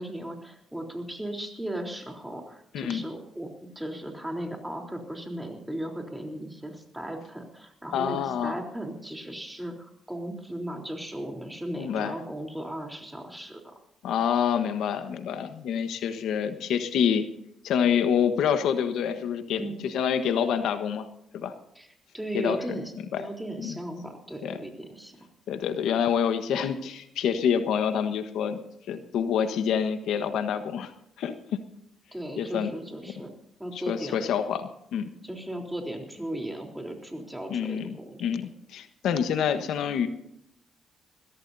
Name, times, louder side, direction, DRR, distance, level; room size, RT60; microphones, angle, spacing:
voice 1, 0.0-13.7 19.6-19.8 21.8-25.2 32.1-33.3 33.6-34.2 35.2-38.4, right 1 dB, 5° right, 2 dB, 3.7 m, -36 dB
voice 2, 7.9-8.5 11.8-12.1 14.0-17.3 17.6-21.1 21.3-21.5 22.3-22.8 23.1-23.2 23.6-23.8 24.4-24.6 25.5-28.6 28.9-30.9 31.2-31.6 32.4-32.7 33.7-34.6 34.9-35.1 37.5-37.9 38.2-40.1, left 8 dB, 80° left, 9 dB, 1.3 m, -27 dB
22.0 x 16.0 x 2.8 m, 0.77 s
cardioid pair, 90°, 0 cm